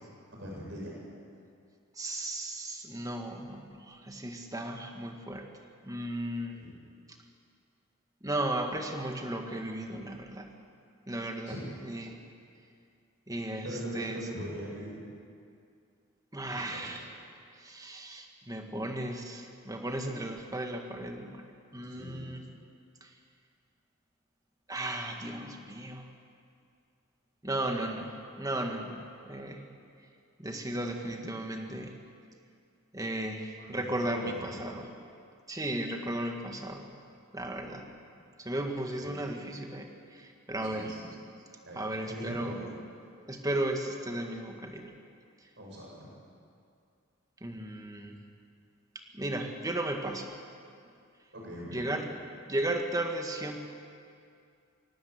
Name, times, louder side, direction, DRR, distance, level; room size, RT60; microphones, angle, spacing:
voice 1, 0.3-0.9 6.5-6.7 11.5-11.8 13.6-15.0 16.5-17.0 21.9-22.3 33.6-34.6 39.0-39.2 40.6-41.1 41.7-42.7 45.6-46.1 51.3-52.2, equal, 60° right, -3 dB, 7.3 m, -41 dB
voice 2, 2.0-5.5 5.8-6.6 8.2-10.5 11.1-11.6 11.8-12.2 13.3-14.2 16.3-17.1 17.5-21.5 21.7-22.4 23.0-23.1 24.7-26.1 27.4-29.6 30.4-31.9 32.9-35.1 35.5-36.9 37.3-37.9 38.4-41.0 41.2-41.4 41.8-42.8 43.3-44.9 47.4-48.2 49.1-50.3 51.7-53.6, right 1 dB, 15° right, 3 dB, 1.9 m, -35 dB
24.5 x 17.5 x 8.4 m, 2.4 s
head